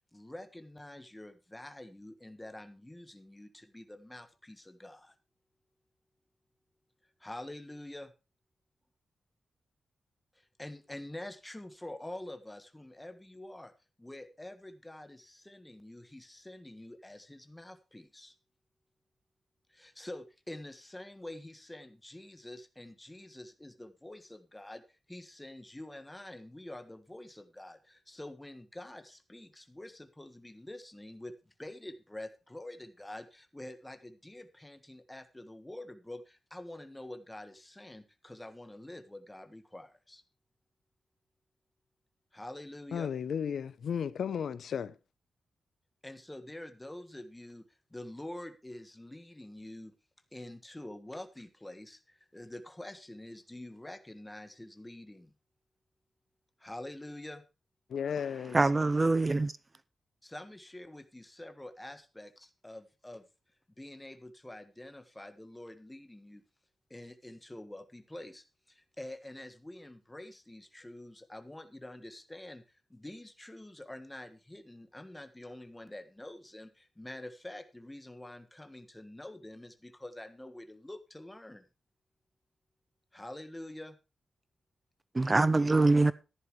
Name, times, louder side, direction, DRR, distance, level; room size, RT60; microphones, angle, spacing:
voice 1, 0.1-5.1 7.2-8.1 10.4-13.7 14.0-18.3 19.7-24.8 25.1-40.2 42.3-43.1 46.0-47.6 47.9-49.9 50.3-55.3 56.6-57.4 60.2-63.2 63.8-66.4 66.9-72.6 72.9-81.6 83.1-84.0, left 1 dB, 10° left, 1.5 m, -46 dB
voice 2, 42.9-45.0 57.9-58.6, left 7 dB, 75° left, 0.7 m, -34 dB
voice 3, 58.5-59.5 85.1-86.1, right 3 dB, 20° right, 0.5 m, -24 dB
14.0 x 11.0 x 3.2 m
wide cardioid pair, 150°, 0 cm